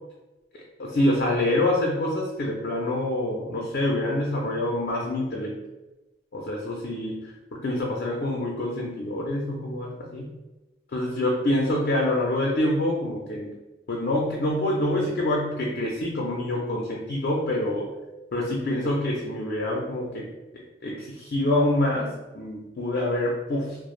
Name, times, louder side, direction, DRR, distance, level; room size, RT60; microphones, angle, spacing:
voice 1, 0.8-5.6 6.3-10.3 10.9-13.5 13.9-17.9 18.3-20.3 20.5-23.8, left 1 dB, 55° left, -2 dB, 0.4 m, -26 dB
2.4 x 2.0 x 3.0 m, 1.1 s
head